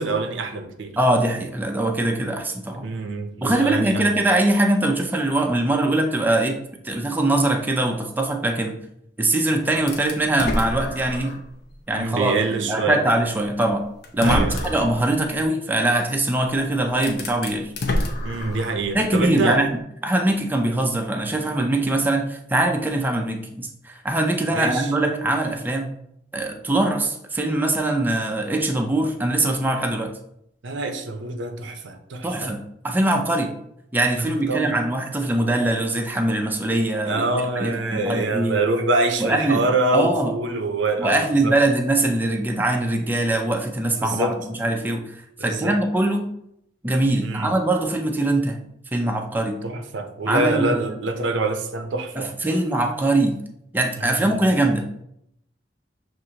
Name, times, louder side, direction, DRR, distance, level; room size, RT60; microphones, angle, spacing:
voice 1, 0.0-1.0 2.8-4.2 12.0-13.0 14.2-14.7 18.2-19.6 24.5-24.9 30.6-32.5 34.2-34.7 37.0-41.6 44.0-44.4 45.4-45.8 47.2-47.5 49.6-52.5 54.0-54.2, right 2 dB, 85° right, 6 dB, 0.6 m, -25 dB
voice 2, 1.0-2.9 3.4-6.6 6.8-8.8 9.2-11.4 11.9-13.9 14.1-17.7 18.9-25.9 26.3-30.2 32.2-33.5 33.9-38.7 39.2-39.7 39.9-40.3 41.0-45.0 45.4-46.3 46.8-48.6 48.9-49.6 50.3-51.0 52.2-53.4 53.7-54.9, right 1 dB, 10° right, 2 dB, 0.4 m, -22 dB
sound 1, 9.9-11.5 12.0-12.1 13.4-13.5 14.0-15.0 16.4-16.5 16.9-18.9, left 1 dB, 60° left, 0.6 m, -27 dB
6.2 x 2.5 x 2.8 m, 0.76 s
head